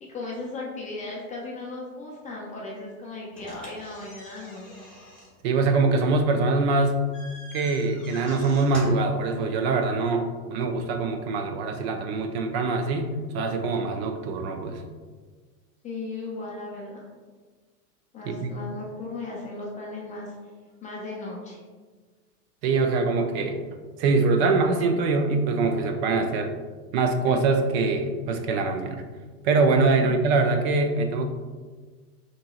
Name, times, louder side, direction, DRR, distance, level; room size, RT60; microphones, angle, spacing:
voice 1, 0.0-4.7 15.8-17.1 18.1-20.3 20.8-21.6 30.0-30.2, left 2 dB, 20° left, -3 dB, 0.4 m, -36 dB
sound 1, 3.3-9.2, left 1 dB, ahead, 1.3 m, -44 dB
voice 2, 5.4-7.0 7.5-14.8 18.3-18.5 22.6-23.6 24.0-26.5 26.9-29.0 29.4-31.2, right 3 dB, 45° right, 6 dB, 0.5 m, -23 dB
5.5 x 3.0 x 2.3 m, 1.4 s
hypercardioid pair, 120°, 46 cm